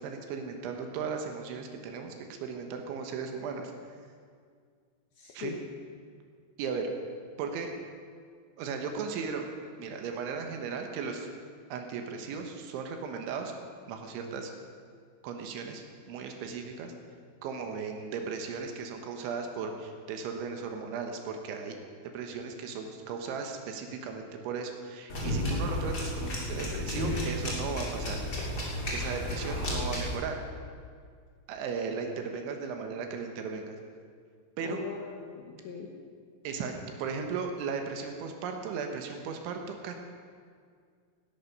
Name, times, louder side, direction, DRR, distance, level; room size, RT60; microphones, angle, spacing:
voice 1, 0.0-2.1 2.4-3.7 5.3-5.6 6.6-6.9 7.4-7.7 8.6-9.4 9.8-11.3 11.7-13.6 13.9-14.5 15.2-16.9 17.4-21.8 22.1-28.4 28.9-30.4 31.5-33.8 34.6-34.8 36.4-36.7 37.0-40.0, right 5 dB, 75° right, 4 dB, 3.3 m, -36 dB
voice 2, 5.2-5.6 26.5-26.9 34.6-35.9, left 6 dB, 70° left, 0 dB, 2.4 m, -41 dB
sound 1, 25.1-30.2, left 1 dB, 30° left, 2.0 m, -32 dB
18.0 x 12.0 x 5.3 m, 2.1 s
omnidirectional pair, 5.8 m